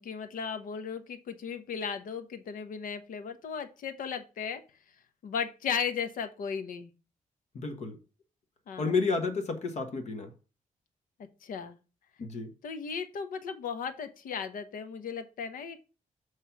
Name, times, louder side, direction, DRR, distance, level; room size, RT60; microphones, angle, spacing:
voice 1, 0.0-4.6 5.2-6.9 8.7-8.9 11.4-11.8 12.6-15.9, left 6 dB, 85° left, 0.9 m, -36 dB
voice 2, 7.5-8.0 8.8-10.3 12.2-12.5, left 4 dB, 55° left, 1.2 m, -31 dB
7.4 x 3.2 x 5.7 m
wide cardioid pair, 165°, 14 cm